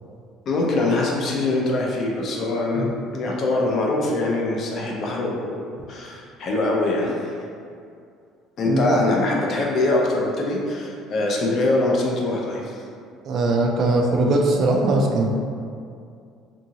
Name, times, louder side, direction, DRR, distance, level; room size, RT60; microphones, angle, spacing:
voice 1, 0.5-2.9 3.1-7.3 8.6-12.8, left 2 dB, 40° left, -2 dB, 0.4 m, -23 dB
voice 2, 8.7-9.0 13.3-15.3, right 2 dB, 40° right, 0 dB, 0.3 m, -20 dB
2.7 x 2.6 x 2.7 m, 2.3 s
cardioid pair, 165°, 0 cm